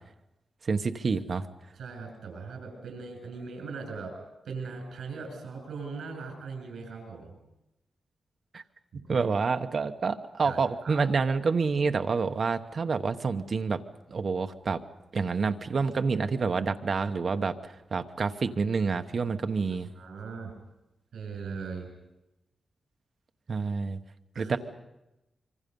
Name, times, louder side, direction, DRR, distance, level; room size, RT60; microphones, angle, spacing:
voice 1, 0.6-1.5 8.5-8.6 9.1-13.8 14.1-14.8 15.1-19.9 23.5-24.0 24.4-24.6, right 4 dB, 45° right, 7 dB, 1.0 m, -28 dB
voice 2, 1.8-4.2 4.4-7.4 8.9-9.4 10.4-11.0 20.0-20.5 21.1-21.9 24.3-24.6, right 4 dB, 85° right, 4 dB, 7.0 m, -39 dB
26.0 x 24.0 x 5.4 m, 0.95 s
wide cardioid pair, 150°, 0 cm